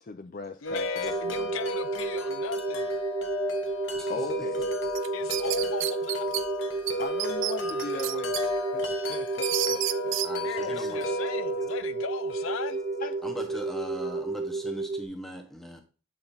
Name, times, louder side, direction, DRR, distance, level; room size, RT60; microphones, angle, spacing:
voice 1, 0.0-1.6 4.1-4.7 7.0-8.8 9.1-10.2 13.0-13.1, left 3 dB, 45° left, 0.5 m, -39 dB
voice 2, 0.6-3.0 5.1-6.3 10.4-12.8, left 6 dB, 85° left, 0.6 m, -37 dB
Wind chime, 0.6-14.6, left 1 dB, 70° left, 1.2 m, -34 dB
sound 1, 1.0-15.0, right 3 dB, 50° right, 0.9 m, -32 dB
voice 3, 3.9-4.4 10.2-11.0 13.2-15.8, equal, ahead, 1.2 m, -40 dB
sound 2, 4.9-6.4 6.9-7.0 7.2-8.4 8.8-10.3, right 14 dB, 70° right, 0.5 m, -30 dB
8.7 x 5.8 x 2.8 m
head